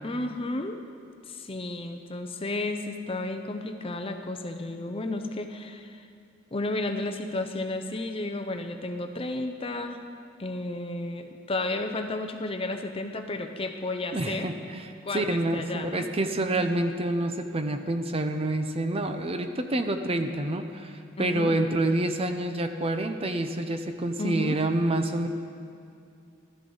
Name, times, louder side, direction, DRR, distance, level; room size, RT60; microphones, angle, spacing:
voice 1, 0.0-0.8 1.3-6.1 6.5-10.0 10.4-14.5 15.0-16.1 21.2-21.6 24.2-24.6, left 2 dB, 30° left, 6 dB, 0.6 m, -32 dB
voice 2, 14.1-25.3, right 1 dB, 30° right, 7 dB, 0.6 m, -28 dB
16.0 x 12.5 x 4.0 m, 2.4 s
head